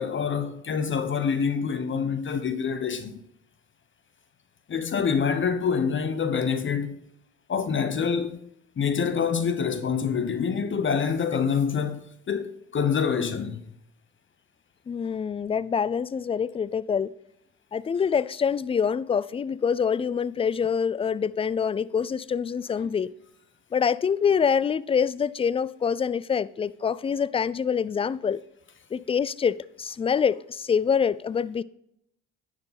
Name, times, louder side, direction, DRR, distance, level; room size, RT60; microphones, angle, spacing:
voice 1, 0.0-3.2 4.7-7.0 7.5-8.4 8.8-13.7, left 6 dB, 35° left, 1.0 m, -26 dB
voice 2, 14.9-17.1 17.7-23.1 23.7-28.4 28.9-31.6, left 7 dB, 20° left, 0.4 m, -25 dB
10.5 x 6.4 x 4.1 m
hypercardioid pair, 65°, 33 cm